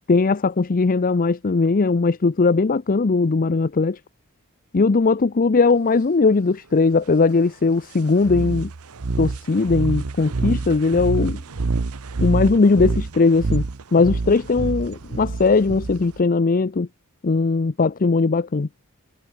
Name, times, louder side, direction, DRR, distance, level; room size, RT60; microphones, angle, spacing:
voice 1, 0.1-4.0 4.7-8.7 9.2-11.4 12.2-13.6 13.9-16.9 17.2-18.7, left 4 dB, 40° left, 0.5 m, -19 dB
sound 1, 8.2-16.2, right 3 dB, 85° right, 0.9 m, -27 dB
head